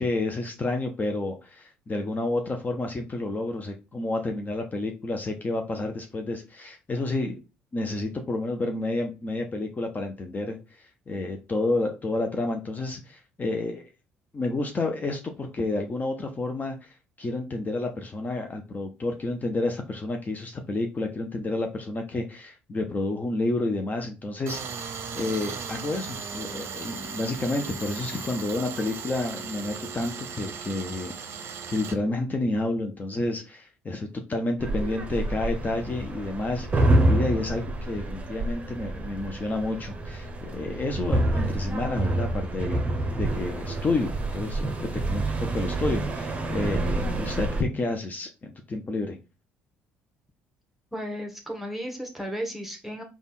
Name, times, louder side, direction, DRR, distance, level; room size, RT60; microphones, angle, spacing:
voice 1, 0.0-7.4 7.7-13.9 14.3-42.8 43.1-49.2, left 2 dB, 30° left, 4 dB, 0.7 m, -30 dB
Tools, 24.5-32.0, right 6 dB, 50° right, 0.6 m, -37 dB
sound 1, 34.6-47.6, right 1 dB, 25° right, 0.8 m, -27 dB
voice 2, 50.9-53.0, equal, 5° right, 2 dB, 1.1 m, -34 dB
3.4 x 2.4 x 4.1 m, 0.29 s
hypercardioid pair, 55°, 5 cm